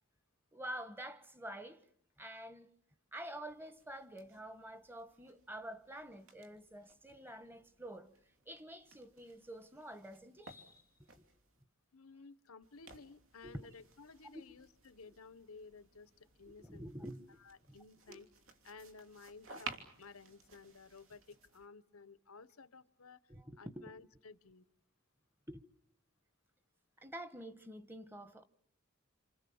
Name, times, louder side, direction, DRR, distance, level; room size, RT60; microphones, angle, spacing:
voice 1, 0.5-1.9 2.2-2.8 3.1-8.1 8.4-11.2 13.4-13.7 14.3-14.4 16.5-17.4 17.7-17.8 18.1-18.2 23.3-24.0 25.5-25.6 27.0-28.4, right 1 dB, 10° right, 1.3 m, -48 dB
sound 1, 3.5-11.6 12.6-21.7, right 4 dB, 70° right, 3.4 m, -56 dB
voice 2, 11.9-16.1 16.4-16.9 17.4-18.3 18.6-23.2 23.6-24.7, left 4 dB, 90° left, 1.2 m, -55 dB
28.5 x 27.0 x 7.3 m
head